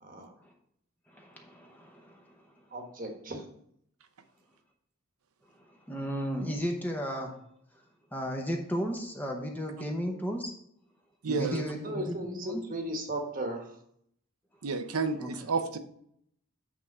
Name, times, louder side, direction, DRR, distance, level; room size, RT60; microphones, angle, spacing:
voice 1, 1.1-2.4 5.7-7.4 8.1-10.5 11.3-12.6 15.2-15.3, equal, 10° left, 1 dB, 0.8 m, -34 dB
voice 2, 2.7-3.4 11.8-13.7, right 1 dB, 35° right, 3 dB, 1.2 m, -36 dB
voice 3, 11.2-11.7 14.6-15.8, right 4 dB, 80° right, 10 dB, 0.7 m, -30 dB
8.2 x 3.6 x 5.4 m, 0.69 s
head